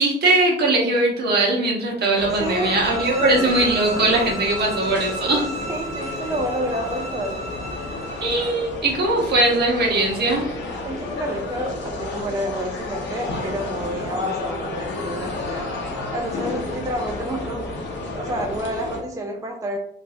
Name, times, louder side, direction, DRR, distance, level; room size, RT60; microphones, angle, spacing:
voice 1, 0.0-5.4 8.2-10.5, right 2 dB, 55° right, -1 dB, 1.2 m, -20 dB
sound 1, 2.1-19.0, left 2 dB, 65° left, 0.9 m, -31 dB
voice 2, 2.3-3.4 5.3-7.4 10.8-15.7 16.1-17.8 18.1-19.8, right 1 dB, 15° right, 1 dB, 0.5 m, -29 dB
sound 2, 2.4-8.6, right 1 dB, 30° right, 1.0 m, -33 dB
3.6 x 2.5 x 2.7 m, 0.67 s
cardioid pair, 90°, 20 cm